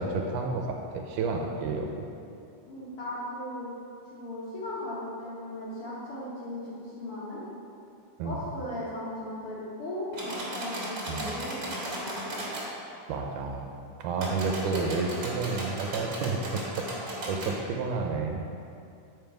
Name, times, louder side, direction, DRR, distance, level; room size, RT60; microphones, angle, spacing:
voice 1, 0.0-1.9 8.2-8.4 11.1-11.3 13.1-13.7 14.0-18.4, right 4 dB, 80° right, 2 dB, 2.0 m, -31 dB
voice 2, 2.7-3.7 4.1-7.4 8.2-11.5 11.8-12.3, left 1 dB, 55° left, -8 dB, 1.7 m, -37 dB
sound 1, 10.1-12.7 14.1-17.5, right 1 dB, 45° right, 1.7 m, -36 dB
7.6 x 5.2 x 4.5 m, 2.5 s
omnidirectional pair, 3.8 m